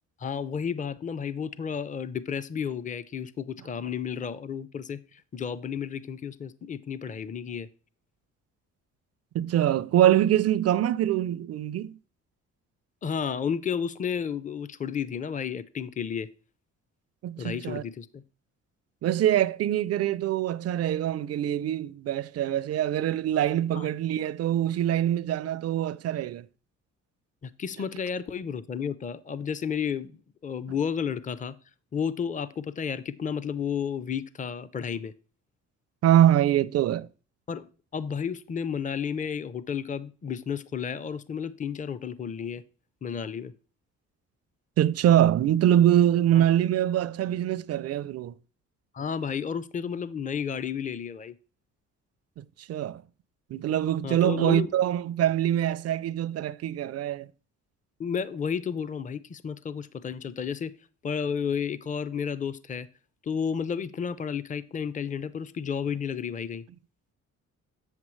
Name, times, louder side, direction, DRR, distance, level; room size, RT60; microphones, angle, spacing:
voice 1, 0.2-7.7 13.0-16.3 17.4-18.2 23.8-23.9 27.4-31.6 31.9-35.1 37.5-42.6 43.0-43.5 46.3-46.4 48.9-51.3 54.0-54.7 58.0-60.7 61.0-62.9 63.2-66.6, left 7 dB, 25° left, 0.5 m, -32 dB
voice 2, 9.3-12.0 17.2-17.8 19.0-26.5 36.0-37.1 44.8-48.3 52.4-53.0 53.5-57.3, right 11 dB, 55° right, 0.4 m, -24 dB
7.7 x 7.3 x 3.1 m
cardioid pair, 90°, 30 cm